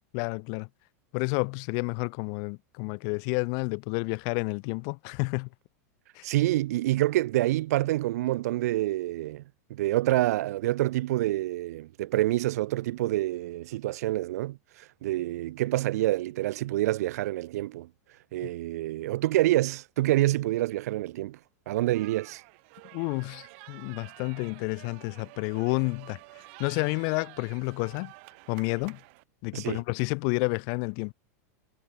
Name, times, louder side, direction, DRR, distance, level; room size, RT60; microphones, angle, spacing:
voice 1, 0.1-0.7 1.1-5.5 6.1-6.3 18.4-18.5 22.9-26.2 26.6-28.1 28.5-29.0 29.4-31.1, left 40 dB or more, 45° left, 0.8 m, -30 dB
voice 2, 6.2-9.4 9.7-17.9 18.3-21.4 21.7-22.4 29.5-29.8, right 16 dB, 70° right, 0.6 m, -27 dB
sound 1, 21.9-29.2, right 30 dB, 50° right, 2.4 m, -50 dB
supercardioid pair, 155°, 9 cm